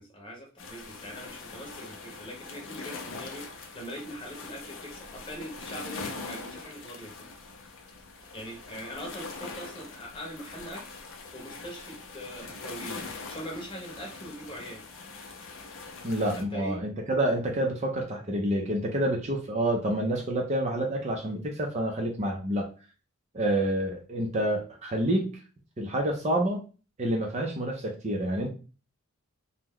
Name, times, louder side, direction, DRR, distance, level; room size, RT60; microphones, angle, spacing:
voice 1, 0.0-7.3 8.3-11.0 11.3-13.0 13.3-14.8 16.3-16.8, equal, 25° left, -1 dB, 0.9 m, -42 dB
sound 1, 0.6-16.4, left 4 dB, 55° left, 0.6 m, -42 dB
voice 2, 16.0-22.7 23.3-25.4 25.8-26.6 27.0-28.5, right 1 dB, 30° right, 1 dB, 0.5 m, -28 dB
3.0 x 2.1 x 3.6 m, 0.35 s
head